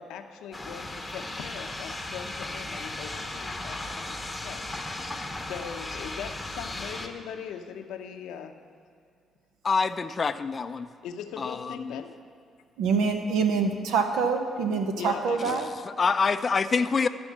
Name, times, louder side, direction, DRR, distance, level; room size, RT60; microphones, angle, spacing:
voice 1, 0.0-4.6 5.1-8.5 11.0-12.2 14.9-15.7, left 8 dB, 90° left, 6 dB, 0.6 m, -40 dB
sound 1, 0.5-7.1, left 2 dB, 15° left, 0.8 m, -36 dB
voice 2, 9.6-10.9 11.4-12.0 15.4-15.6 15.8-17.1, left 5 dB, 35° left, 10 dB, 0.4 m, -26 dB
voice 3, 12.8-15.7, right 5 dB, 90° right, 5 dB, 0.9 m, -25 dB
12.5 x 4.4 x 7.3 m, 2.3 s
cardioid pair, 90°, 0 cm